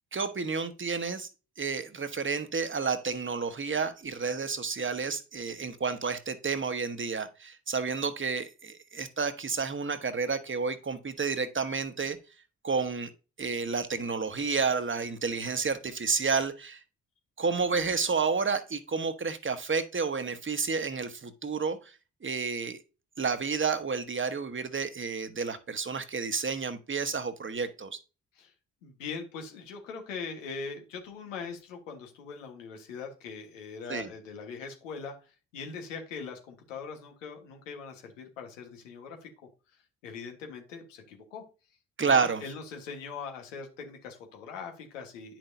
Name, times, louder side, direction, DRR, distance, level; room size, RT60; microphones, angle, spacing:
voice 1, 0.1-1.3 1.6-12.2 12.6-13.1 13.4-16.8 17.4-21.9 22.2-22.8 23.2-28.0 33.9-34.1 42.0-42.4, right 5 dB, 30° right, 1.2 m, -30 dB
voice 2, 28.8-39.3 40.0-41.4 42.0-45.4, left 5 dB, 90° left, 1.6 m, -41 dB
10.0 x 6.0 x 2.7 m
hypercardioid pair, 40°, 37 cm